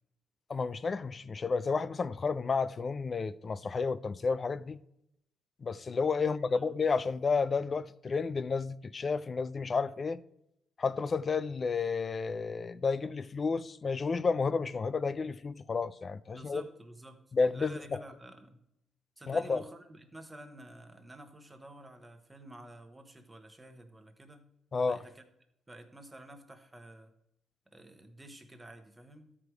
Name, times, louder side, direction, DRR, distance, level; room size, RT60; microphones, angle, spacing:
voice 1, 0.5-4.8 5.6-10.2 10.8-16.6 17.3-18.0 19.3-19.6 24.7-25.0, left 4 dB, 35° left, 0.4 m, -31 dB
voice 2, 6.2-6.8 16.3-17.2 17.5-18.6 19.2-24.5 24.8-25.2 25.7-27.1 27.7-29.4, right 1 dB, 15° right, 1.2 m, -50 dB
13.0 x 4.9 x 4.7 m
cardioid pair, 95°, 0 cm